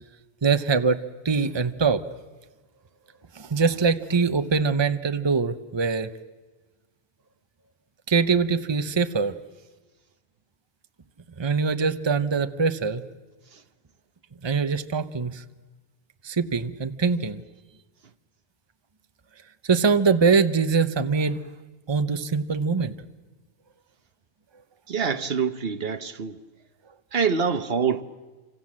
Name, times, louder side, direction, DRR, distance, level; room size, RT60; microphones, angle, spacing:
voice 1, 0.4-1.0 1.2-2.0 3.3-6.1 8.1-9.3 11.4-13.0 14.4-15.4 16.2-17.4 19.6-21.4 21.9-22.9, right 5 dB, 25° right, 0.9 m, -23 dB
voice 2, 24.9-26.4 27.1-28.0, right 6 dB, 65° right, 1.3 m, -25 dB
28.5 x 26.0 x 7.5 m
omnidirectional pair, 1.1 m